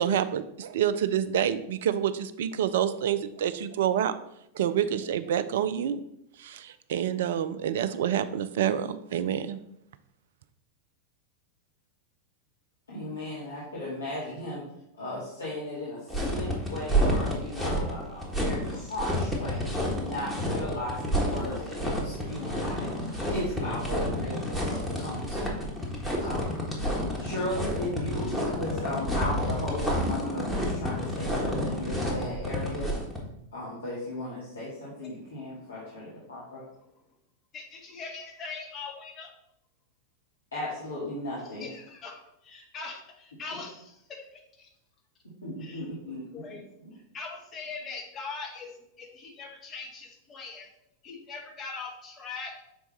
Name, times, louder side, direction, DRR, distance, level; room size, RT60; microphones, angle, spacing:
voice 1, 0.0-4.2 4.6-6.0 6.4-9.6, right 9 dB, 55° right, 13 dB, 0.4 m, -27 dB
voice 2, 12.9-14.6 15.0-25.6 26.2-26.6 27.2-32.9 33.5-36.6 40.5-41.7 45.4-46.6 46.8-47.0, left 1 dB, 70° left, -8 dB, 1.9 m, -36 dB
sound 1, 16.1-33.2, equal, ahead, 1.5 m, -29 dB
voice 3, 37.5-39.3 41.6-44.7 45.6-45.9 46.3-46.6 47.1-48.7 49.0-50.7 51.0-52.5, left 4 dB, 25° left, 1 dB, 1.4 m, -41 dB
5.9 x 4.6 x 4.0 m, 0.80 s
figure-of-eight pair, 90°, 0 cm